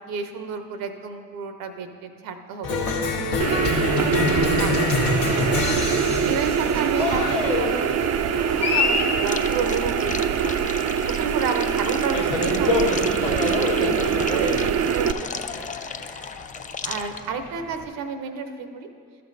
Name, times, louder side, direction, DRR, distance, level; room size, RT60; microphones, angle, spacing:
voice 1, 0.1-2.9 3.2-4.3 4.6-5.8 6.2-8.0 8.5-10.7 11.1-15.7 16.0-16.1 16.8-18.9, right 5 dB, 75° right, 8 dB, 0.8 m, -32 dB
Cheering, 2.6-17.8, left 4 dB, 80° left, 1.2 m, -27 dB
sound 1, 3.4-15.1, right 8 dB, 50° right, 0.5 m, -24 dB
sound 2, 9.2-17.3, left 6 dB, 25° left, 0.4 m, -36 dB
13.0 x 5.6 x 4.1 m, 2.2 s
supercardioid pair, 55°, 34 cm